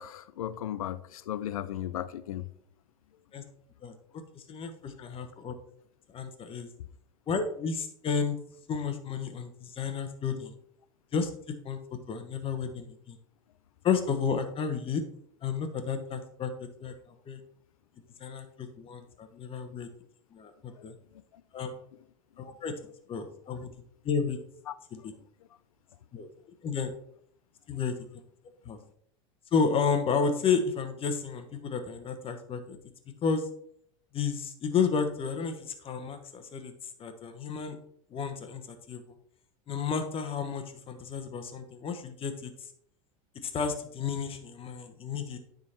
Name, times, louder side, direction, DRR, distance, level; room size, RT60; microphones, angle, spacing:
voice 1, 0.0-2.4, left 11 dB, 90° left, 0.5 m, -35 dB
voice 2, 3.8-5.5 6.1-6.7 7.3-8.4 8.7-10.5 11.1-11.3 11.6-11.8 12.1-13.2 13.8-15.0 15.4-16.5 16.8-17.4 18.2-19.9 20.3-20.9 21.5-21.7 22.4-22.7 23.1-23.7 24.0-24.4 24.9-25.1 26.1-26.3 26.6-26.9 27.7-27.9 28.6-28.8 29.5-32.8 33.2-33.5 34.1-36.7 37.0-37.8 38.1-39.1 39.7-42.5 43.4-45.4, left 6 dB, 30° left, 1.2 m, -31 dB
9.5 x 3.9 x 4.4 m
hypercardioid pair, 110°, 17 cm